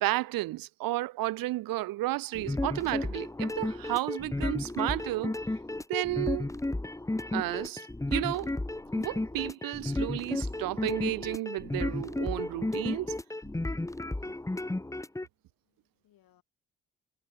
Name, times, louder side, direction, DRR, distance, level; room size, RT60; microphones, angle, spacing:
voice 1, 0.0-5.3 5.9-6.5 7.3-8.6 8.9-13.1, right 17 dB, 70° right, 0.6 m, -32 dB
sound 1, 2.3-15.3, left 2 dB, 10° left, 0.9 m, -33 dB
voice 2, 15.2-16.4, left 13 dB, 75° left, 5.1 m, -69 dB
supercardioid pair, 50°, 35 cm